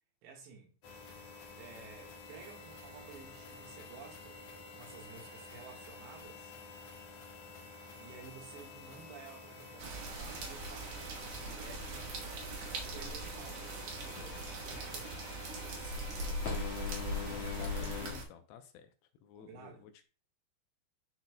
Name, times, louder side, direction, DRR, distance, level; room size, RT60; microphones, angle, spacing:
voice 1, 0.2-0.8 1.6-6.6 8.0-15.1 15.6-16.4 19.4-19.8, right 6 dB, 80° right, 3.7 m, -53 dB
sound 1, 0.8-18.1, left 5 dB, 55° left, 2.1 m, -48 dB
sound 2, 9.8-18.2, right 1 dB, 65° right, 2.3 m, -40 dB
voice 2, 17.2-18.9 19.2-20.1, left 8 dB, 80° left, 2.8 m, -52 dB
10.5 x 4.1 x 2.2 m
omnidirectional pair, 5.0 m